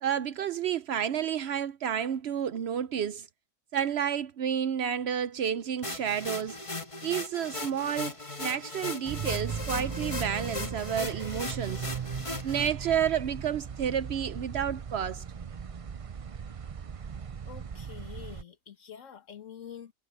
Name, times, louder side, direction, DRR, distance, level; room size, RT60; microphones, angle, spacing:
voice 1, 0.0-3.3 3.7-6.6 7.0-11.9 12.4-15.2, right 9 dB, 65° right, 0.7 m, -30 dB
sound 1, 5.8-12.7, left 2 dB, 25° left, 1.7 m, -38 dB
sound 2, 9.1-18.4, right 7 dB, 45° right, 0.4 m, -38 dB
voice 2, 17.5-19.9, left 8 dB, 70° left, 1.9 m, -46 dB
omnidirectional pair, 1.4 m